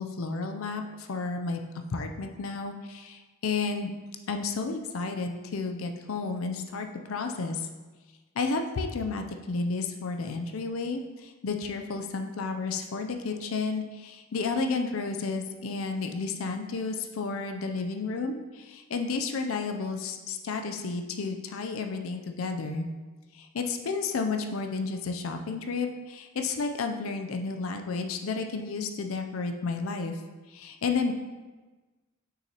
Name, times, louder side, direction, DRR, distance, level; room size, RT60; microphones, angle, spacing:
voice 1, 0.0-1.6 1.9-3.9 4.3-7.7 8.4-22.9 23.3-30.1 30.5-31.1, left 4 dB, 80° left, 5 dB, 0.5 m, -32 dB
6.3 x 6.0 x 2.9 m, 1.3 s
head